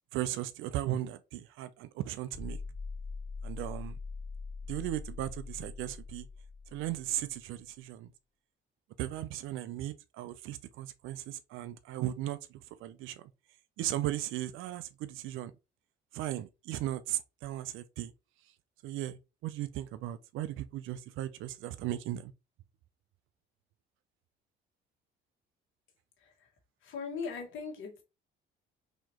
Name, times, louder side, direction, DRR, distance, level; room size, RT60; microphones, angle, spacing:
voice 1, 0.1-2.6 3.4-4.0 4.7-6.3 6.7-8.1 9.0-13.3 13.8-15.5 16.1-18.1 18.8-22.3, right 13 dB, 75° right, 0.4 m, -37 dB
sound 1, 2.3-7.4, left 4 dB, 15° left, 1.3 m, -42 dB
voice 2, 26.2-26.5 26.8-28.0, left 5 dB, 70° left, 1.5 m, -40 dB
4.2 x 2.9 x 2.9 m
cardioid pair, 100°, 21 cm